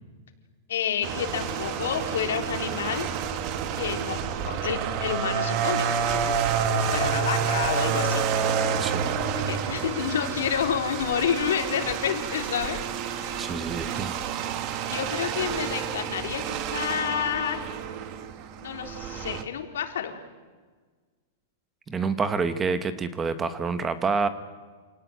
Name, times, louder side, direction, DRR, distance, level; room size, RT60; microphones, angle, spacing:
voice 1, 0.7-3.1 3.8-4.2 4.5-6.4 6.7-8.3 9.3-12.8 13.1-13.5 14.8-17.6 18.6-20.1, left 8 dB, 80° left, 5 dB, 3.6 m, -29 dB
sound 1, 1.0-19.4, right 7 dB, 30° right, 1.4 m, -29 dB
voice 2, 13.4-14.2 21.9-24.3, right 4 dB, 10° right, 12 dB, 0.9 m, -27 dB
28.0 x 18.0 x 9.3 m, 1.4 s
supercardioid pair, 175°, 0 cm